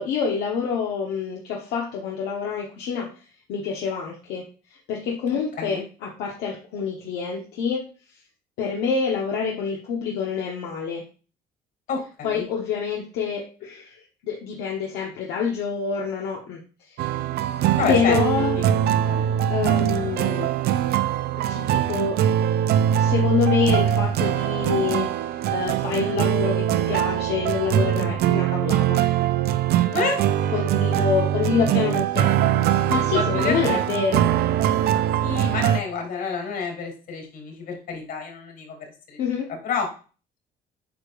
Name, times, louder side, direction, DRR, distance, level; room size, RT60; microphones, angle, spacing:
voice 1, 0.0-3.1 3.5-4.4 4.7-7.9 8.6-11.0 12.2-16.6 16.9-17.0 17.9-18.6 19.5-20.5 21.4-22.2 22.9-29.0 30.5-32.3 32.9-34.3 39.2-39.5, left 6 dB, 90° left, -2 dB, 1.3 m, -27 dB
voice 2, 5.3-5.8 11.9-12.4 17.8-18.2 18.5-19.4 29.9-30.2 33.1-33.8 35.2-38.8 39.1-39.2 39.5-39.9, left 5 dB, 65° left, 2 dB, 3.4 m, -29 dB
sound 1, 17.0-35.8, right 10 dB, 70° right, 0.6 m, -22 dB
8.6 x 5.0 x 2.5 m, 0.35 s
cardioid pair, 110°, 17 cm